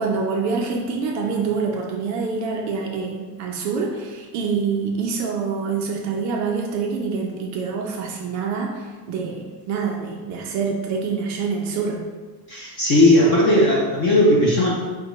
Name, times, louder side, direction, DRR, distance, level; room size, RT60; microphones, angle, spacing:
voice 1, 0.0-12.0, right 5 dB, 40° right, 0 dB, 0.4 m, -26 dB
voice 2, 12.5-14.7, left 1 dB, 25° left, -4 dB, 0.3 m, -16 dB
5.1 x 2.2 x 4.6 m, 1.3 s
cardioid pair, 170°, 50 cm